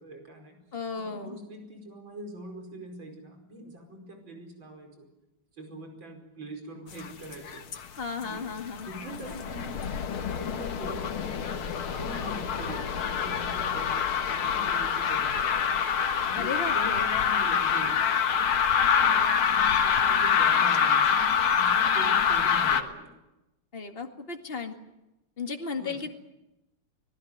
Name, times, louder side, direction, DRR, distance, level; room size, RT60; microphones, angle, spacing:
voice 1, 0.0-0.6 0.9-5.1 5.5-7.7 8.2-8.4 8.8-9.8 10.1-11.4 11.9-14.0 14.3-15.7 16.3-23.1 25.8-26.0, right 1 dB, 65° right, 4 dB, 5.8 m, -43 dB
voice 2, 0.7-1.4 8.0-8.9 16.4-17.0 23.7-24.8 25.4-26.1, left 4 dB, 30° left, 5 dB, 2.2 m, -35 dB
sound 1, 6.9-7.9 8.1-22.8, left 7 dB, 90° left, 2.4 m, -25 dB
25.0 x 19.0 x 9.5 m, 0.96 s
omnidirectional pair, 2.3 m